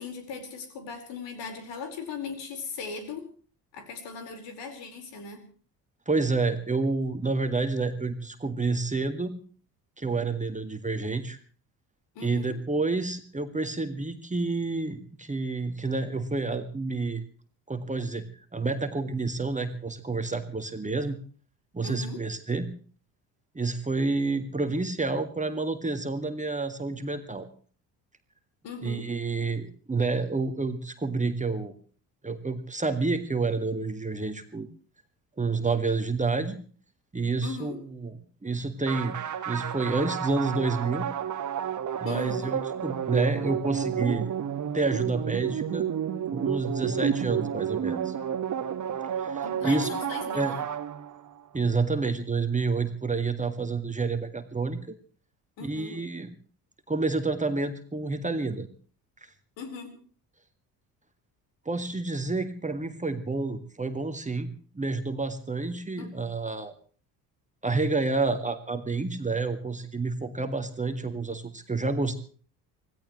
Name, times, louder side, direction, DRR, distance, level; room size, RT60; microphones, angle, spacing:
voice 1, 0.0-3.3 3.7-5.5 12.1-12.6 21.8-22.2 28.6-29.1 37.4-37.8 42.0-42.6 49.4-50.6 55.6-56.0 59.6-60.0 66.0-66.1, left 5 dB, 60° left, 6 dB, 4.8 m, -38 dB
voice 2, 6.1-9.3 10.0-11.4 12.2-17.2 17.7-21.2 21.7-22.7 23.6-27.5 28.8-31.7 32.2-34.7 35.4-36.6 37.1-38.1 38.4-39.2 39.5-41.1 42.0-44.3 44.7-45.9 46.3-48.1 49.2-50.0 50.3-50.5 51.5-55.0 55.6-56.3 56.9-58.7 61.7-64.5 64.7-66.7 67.6-72.2, right 3 dB, 15° right, 7 dB, 2.0 m, -29 dB
sound 1, 38.9-51.4, right 9 dB, 35° right, 1.6 m, -31 dB
26.5 x 17.0 x 3.2 m, 0.42 s
figure-of-eight pair, 50°, 49 cm